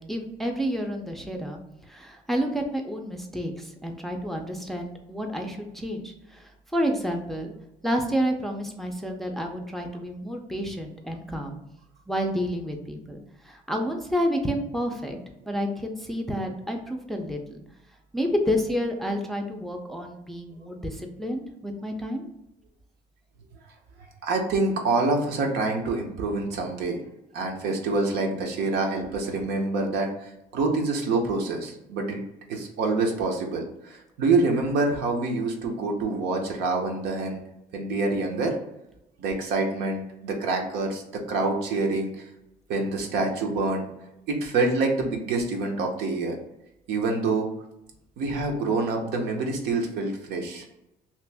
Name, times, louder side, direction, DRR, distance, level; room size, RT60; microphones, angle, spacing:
voice 1, 0.0-1.6 1.9-7.5 7.8-11.6 12.1-15.2 15.5-17.6 18.1-22.3, equal, ahead, 2 dB, 0.4 m, -30 dB
voice 2, 24.2-27.0 27.3-32.2 32.5-37.4 37.7-38.5 39.2-42.1 42.7-43.9 44.3-46.4 46.9-47.5 48.2-50.7, right 3 dB, 80° right, 2 dB, 0.8 m, -26 dB
2.9 x 2.5 x 3.4 m, 0.87 s
cardioid pair, 110°, 17 cm